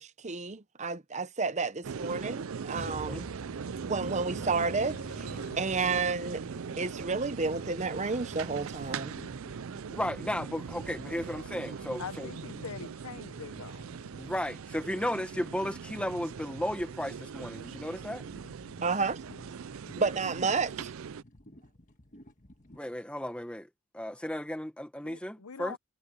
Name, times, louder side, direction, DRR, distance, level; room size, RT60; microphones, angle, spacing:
voice 1, 0.0-3.3 3.8-6.4 6.8-9.1 18.8-19.2 20.0-20.9, right 4 dB, 30° right, 0.7 m, -31 dB
sound 1, 1.8-21.2, right 6 dB, 70° right, 0.4 m, -40 dB
Motorcycle, 2.7-14.8, left 1 dB, 50° left, 6.4 m, -50 dB
voice 2, 2.9-3.2 9.9-12.3 14.2-18.2 22.7-23.7 23.9-25.8, left 1 dB, 5° left, 1.4 m, -34 dB
sound 2, 5.3-22.8, left 1 dB, 35° left, 1.7 m, -55 dB
voice 3, 12.0-13.9 25.0-25.8, left 6 dB, 80° left, 0.9 m, -43 dB
head